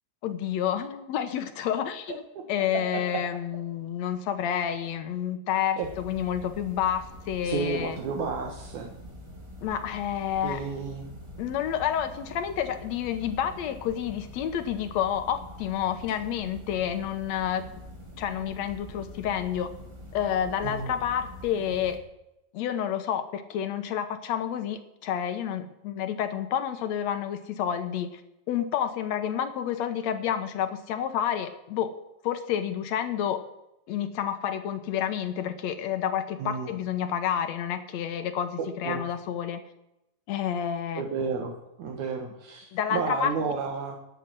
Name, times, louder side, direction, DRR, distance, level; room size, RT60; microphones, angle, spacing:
voice 1, 0.2-2.1 2.5-8.0 9.6-10.6 11.4-17.6 18.2-19.7 20.1-22.0 22.5-28.2 28.5-31.9 32.2-33.4 33.9-39.6 40.3-41.0 42.7-43.3, left 9 dB, 70° left, 9 dB, 1.9 m, -29 dB
sound 1, 5.8-22.0, equal, 20° right, 0.7 m, -45 dB
voice 2, 7.4-8.9 10.4-11.1 20.6-21.0 36.4-36.7 38.6-39.0 40.9-41.5 41.8-44.0, right 5 dB, 75° right, 3 dB, 2.5 m, -31 dB
11.5 x 8.1 x 7.4 m, 0.86 s
omnidirectional pair, 3.5 m